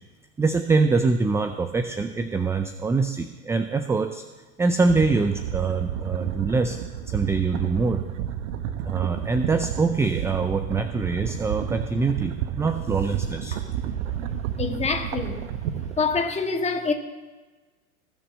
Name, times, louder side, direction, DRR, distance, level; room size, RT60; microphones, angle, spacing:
voice 1, 0.4-4.2 4.6-6.8 7.1-8.0 8.8-13.6, right 4 dB, 5° right, 0.4 m, -24 dB
sound 1, 4.7-16.2, right 9 dB, 60° right, 1.3 m, -31 dB
voice 2, 14.6-15.4 16.0-16.9, left 4 dB, 15° left, 1.6 m, -25 dB
19.0 x 6.9 x 7.4 m
hypercardioid pair, 105°, 44 cm